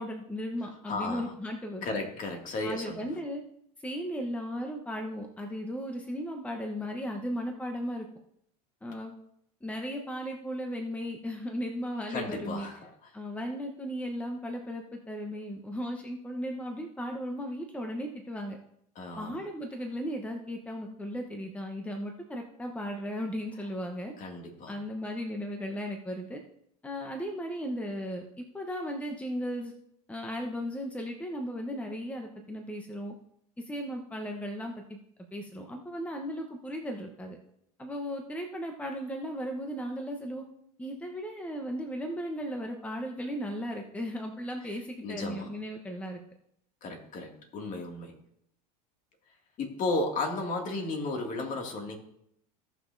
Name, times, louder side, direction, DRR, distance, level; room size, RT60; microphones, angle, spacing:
voice 1, 0.0-1.9 2.6-3.4 3.8-8.1 8.8-9.1 9.6-12.7 13.1-18.6 19.2-24.1 24.7-26.4 26.8-29.7 30.1-33.1 33.6-35.0 35.3-37.4 37.8-40.4 40.8-46.2, equal, 5° left, 3 dB, 1.0 m, -36 dB
voice 2, 0.9-1.3 1.8-3.1 12.1-12.9 19.0-19.3 24.2-24.7 45.0-45.5 46.8-48.2 49.6-52.0, left 2 dB, 40° left, 2 dB, 2.3 m, -34 dB
16.5 x 6.0 x 2.7 m, 0.73 s
supercardioid pair, 105°, 20 cm